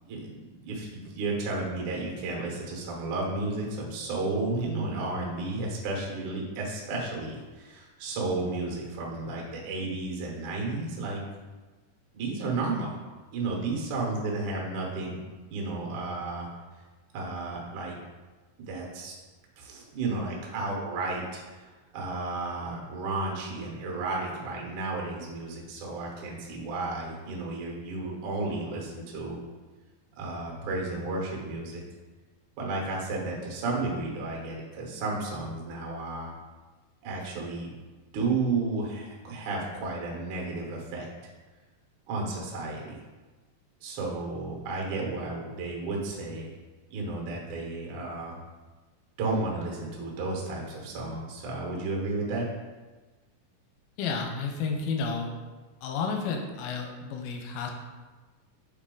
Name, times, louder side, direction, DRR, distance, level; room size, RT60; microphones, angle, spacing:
voice 1, 0.0-11.2 12.1-13.0 13.3-15.2 15.5-16.5 17.1-18.0 18.7-19.1 19.6-29.4 30.2-31.8 32.6-36.3 37.0-37.7 38.1-41.1 42.1-43.0 43.8-46.5 46.9-48.4 49.2-52.5, right 3 dB, 65° right, -1 dB, 2.2 m, -32 dB
voice 2, 54.0-55.3 55.8-57.7, left 5 dB, 85° left, 2 dB, 2.4 m, -31 dB
7.4 x 3.9 x 3.8 m, 1.3 s
omnidirectional pair, 4.3 m